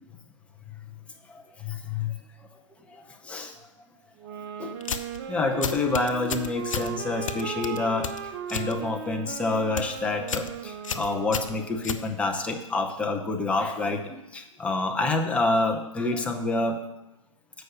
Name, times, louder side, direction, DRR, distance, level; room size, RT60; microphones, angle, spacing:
voice 1, 1.3-2.1 2.9-3.5 4.6-5.0 5.3-8.1 8.5-16.8, left 3 dB, 5° left, 2 dB, 0.7 m, -28 dB
sound 1, 4.2-12.0, right 8 dB, 40° right, 0.6 m, -37 dB
lighter multiple tries, 4.8-5.2 5.6-6.9 7.3-8.7 9.1-9.4 9.6-9.9 10.3-10.5 10.8-12.5, left 7 dB, 75° left, 0.7 m, -32 dB
7.8 x 5.6 x 6.6 m, 0.96 s
hypercardioid pair, 125°, 17 cm